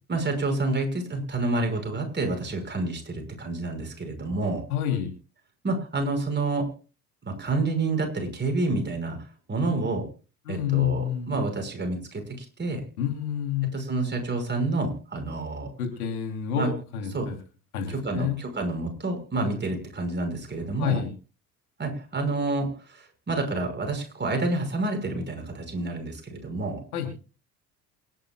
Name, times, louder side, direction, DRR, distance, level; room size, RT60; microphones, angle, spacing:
voice 1, 0.1-4.6 5.6-6.7 7.3-9.2 9.5-10.0 10.5-12.8 13.7-15.7 16.5-16.7 17.1-17.3 17.9-21.0 21.8-22.7 23.3-26.8, right 2 dB, 25° right, 3 dB, 5.8 m, -28 dB
voice 2, 4.7-5.1 10.5-11.4 13.0-13.7 15.8-17.4 17.7-18.4 19.4-19.6 20.8-21.1 26.9-27.1, left 9 dB, 75° left, 4 dB, 3.6 m, -28 dB
28.0 x 10.5 x 2.4 m, 0.36 s
figure-of-eight pair, 55°, 44 cm